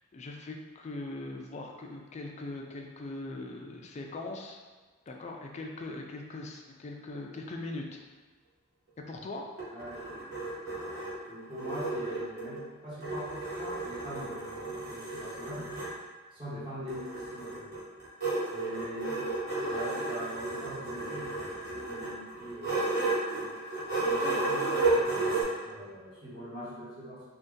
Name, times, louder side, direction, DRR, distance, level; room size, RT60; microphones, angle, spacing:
voice 1, 0.1-4.6 5.1-8.0 9.0-9.5, left 2 dB, 35° left, 1 dB, 0.4 m, -40 dB
sound 1, 9.3-12.6 13.0-16.0 16.9-25.4, right 2 dB, 50° right, 1.2 m, -33 dB
voice 2, 9.7-10.3 11.3-15.7 16.3-17.7 18.5-19.3 19.7-23.5 24.1-27.2, equal, 25° right, -9 dB, 1.1 m, -42 dB
2.6 x 2.5 x 3.7 m, 1.4 s
head